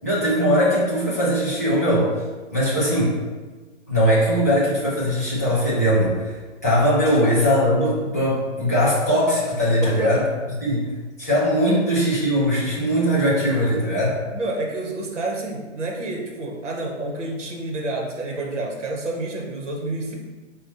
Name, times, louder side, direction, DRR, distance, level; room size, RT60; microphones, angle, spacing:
voice 1, 0.0-2.1 2.5-3.1 3.9-10.3 10.6-10.9 11.2-14.2, equal, 15° left, -11 dB, 0.5 m, -20 dB
voice 2, 9.8-10.1 11.7-11.8 14.3-20.1, right 2 dB, 70° right, 0 dB, 1.2 m, -29 dB
4.1 x 2.3 x 4.1 m, 1.3 s
hypercardioid pair, 180°, 37 cm